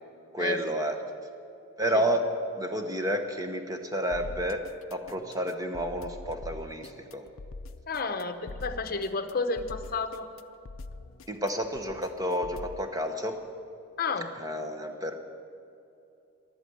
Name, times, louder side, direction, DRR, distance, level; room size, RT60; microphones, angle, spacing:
voice 1, 0.3-1.0 1.8-7.3 11.3-13.4 14.3-15.2, equal, 15° right, 6 dB, 0.9 m, -30 dB
sound 1, 4.1-12.8, left 3 dB, 65° left, 0.5 m, -44 dB
voice 2, 7.9-10.3 14.0-14.3, left 4 dB, 40° left, 8 dB, 0.9 m, -31 dB
14.0 x 11.5 x 7.9 m, 2.7 s
head